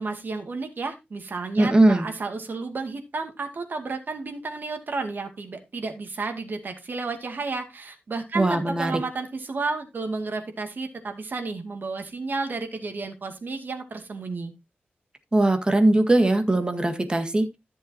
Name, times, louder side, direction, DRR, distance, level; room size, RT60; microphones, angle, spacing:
voice 1, 0.0-14.5, right 3 dB, 60° right, 5 dB, 2.2 m, -32 dB
voice 2, 1.6-2.1 8.3-9.0 15.3-17.6, right 2 dB, 25° right, 6 dB, 1.7 m, -20 dB
14.0 x 7.3 x 2.8 m, 0.22 s
wide cardioid pair, 120°, 4 cm